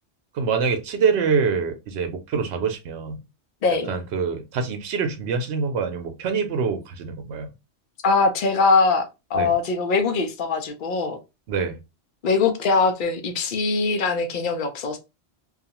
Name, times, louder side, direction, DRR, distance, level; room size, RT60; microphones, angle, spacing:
voice 1, 0.3-3.2 3.7-7.5 9.3-9.5 11.5-11.8, right 5 dB, 80° right, 0.8 m, -25 dB
voice 2, 8.0-11.2 12.2-15.0, left 4 dB, 55° left, 0.7 m, -22 dB
2.4 x 2.3 x 2.8 m
omnidirectional pair, 1.1 m